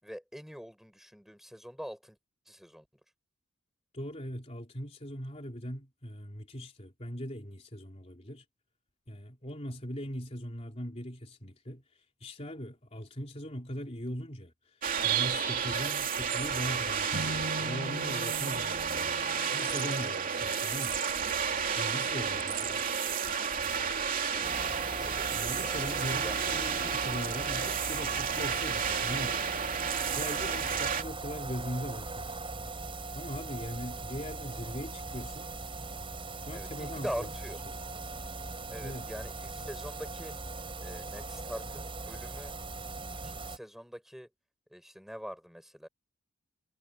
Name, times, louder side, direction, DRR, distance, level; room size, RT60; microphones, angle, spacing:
voice 1, 0.0-2.2 2.5-2.8 24.3-24.7 25.0-25.8 26.2-26.5 36.5-37.6 38.7-40.3 40.8-42.5 43.2-44.3 44.7-45.9, equal, ahead, 5.8 m, -43 dB
voice 2, 3.9-8.4 9.1-11.8 12.2-19.1 19.5-21.0 21.7-23.2 25.3-29.4 30.1-32.4 33.1-35.5 36.5-37.3 37.6-37.8 38.8-39.1, equal, 30° left, 3.4 m, -40 dB
sound 1, 14.8-31.0, right 6 dB, 40° right, 3.0 m, -31 dB
Acoustic guitar / Strum, 17.1-20.5, right 1 dB, 65° right, 5.9 m, -41 dB
sound 2, 24.4-43.6, right 3 dB, 25° right, 7.2 m, -40 dB
head